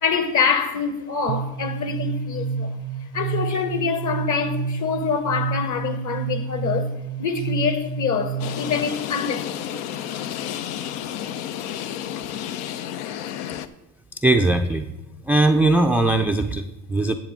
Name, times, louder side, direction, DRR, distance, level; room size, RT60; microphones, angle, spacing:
voice 1, 0.0-6.9 7.2-9.9, left 6 dB, 40° left, 1.3 m, -25 dB
sound 1, 1.3-8.8, right 5 dB, 75° right, 0.7 m, -29 dB
sound 2, 8.4-13.7, left 10 dB, 75° left, 0.7 m, -31 dB
voice 2, 14.1-14.9 15.2-17.2, right 2 dB, 5° right, 0.3 m, -20 dB
10.5 x 7.9 x 3.7 m
hypercardioid pair, 80°, 46 cm